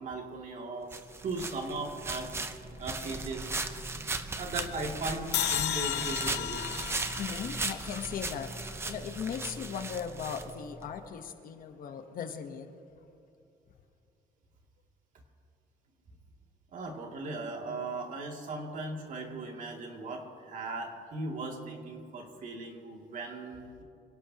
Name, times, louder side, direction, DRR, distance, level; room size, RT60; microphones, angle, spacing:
voice 1, 0.0-2.4 2.8-3.5 4.1-6.6 16.7-23.8, right 3 dB, 50° right, 1 dB, 2.6 m, -38 dB
sound 1, 0.9-10.9, right 3 dB, 15° right, 0.7 m, -37 dB
sound 2, 5.3-8.6, left 12 dB, 75° left, 0.9 m, -34 dB
voice 2, 7.2-12.7, left 7 dB, 55° left, 7 dB, 1.1 m, -38 dB
26.5 x 17.5 x 2.9 m, 2.6 s
cardioid pair, 160°, 17 cm